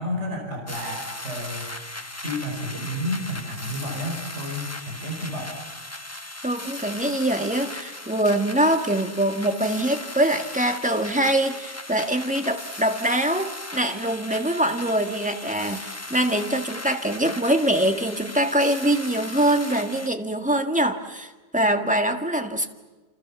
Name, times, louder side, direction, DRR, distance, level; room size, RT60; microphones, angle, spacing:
voice 1, 0.0-1.7 2.2-5.5, left 1 dB, 45° right, 1 dB, 5.4 m, -31 dB
sound 1, 0.7-20.1, left 2 dB, 10° left, 1.1 m, -38 dB
voice 2, 6.4-22.7, right 1 dB, 5° right, 5 dB, 1.8 m, -23 dB
29.0 x 28.0 x 7.2 m, 1.3 s
omnidirectional pair, 1.7 m